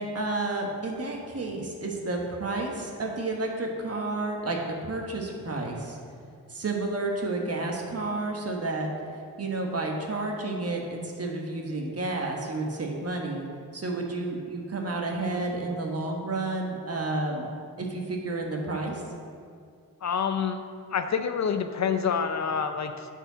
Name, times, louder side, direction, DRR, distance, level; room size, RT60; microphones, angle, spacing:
voice 1, 0.0-6.0 6.5-8.9 9.4-13.5 13.7-17.5 17.8-19.0, right 2 dB, 40° right, 0 dB, 1.3 m, -31 dB
voice 2, 20.0-20.6 20.9-23.1, left 6 dB, 50° left, 8 dB, 0.5 m, -27 dB
9.6 x 4.7 x 4.0 m, 2.2 s
cardioid pair, 70°, 36 cm